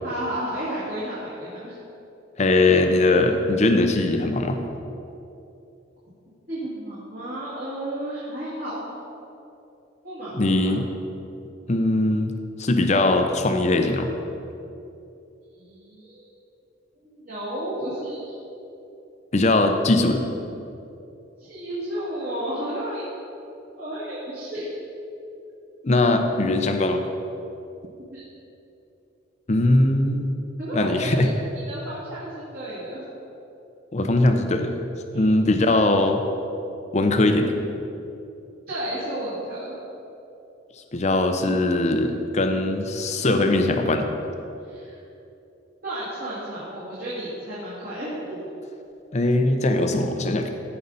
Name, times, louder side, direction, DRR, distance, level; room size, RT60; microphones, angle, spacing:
voice 1, 0.0-1.8 6.5-8.9 10.0-10.7 15.6-16.3 17.0-18.4 21.4-23.1 23.8-24.8 28.1-28.3 30.6-31.3 31.6-33.0 35.1-35.3 38.7-39.7 44.6-45.0 45.8-48.5, right 1 dB, 50° right, -10 dB, 2.3 m, -32 dB
voice 2, 2.4-4.6 10.3-10.8 11.7-12.3 12.6-14.1 19.3-20.2 25.8-27.0 29.5-30.3 30.7-31.3 33.9-34.8 35.1-36.2 36.9-37.5 40.9-44.1 49.1-50.5, left 2 dB, 35° left, 6 dB, 0.6 m, -20 dB
14.0 x 5.5 x 4.1 m, 2.8 s
head